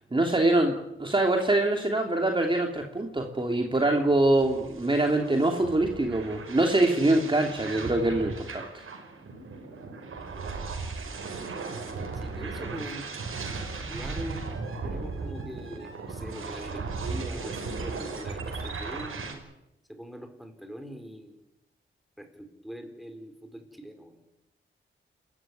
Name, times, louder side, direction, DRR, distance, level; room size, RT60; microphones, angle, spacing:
voice 1, 0.1-8.7, right 2 dB, 25° right, 2 dB, 3.0 m, -24 dB
sound 1, 4.1-19.3, right 4 dB, 80° right, 5.5 m, -37 dB
voice 2, 12.1-13.1 13.9-14.4 14.8-19.5 19.9-21.3 22.2-24.2, equal, ahead, 5 dB, 5.0 m, -42 dB
28.0 x 14.5 x 9.9 m, 0.88 s
cardioid pair, 85°, 21 cm